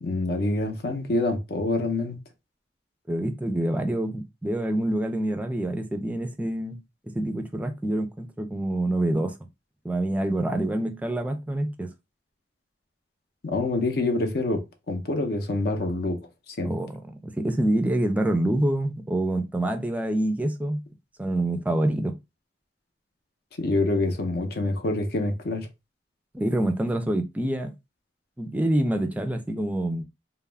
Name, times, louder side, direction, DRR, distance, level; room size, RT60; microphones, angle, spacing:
voice 1, 0.0-2.2 13.4-14.6 14.9-16.2 16.6-16.7 23.6-25.7, left 2 dB, 60° left, 0.6 m, -26 dB
voice 2, 3.1-6.8 7.2-9.3 9.8-11.9 16.6-20.8 21.2-22.2 26.3-27.7 28.4-30.0, right 1 dB, 10° right, 0.3 m, -26 dB
2.3 x 2.0 x 3.2 m
head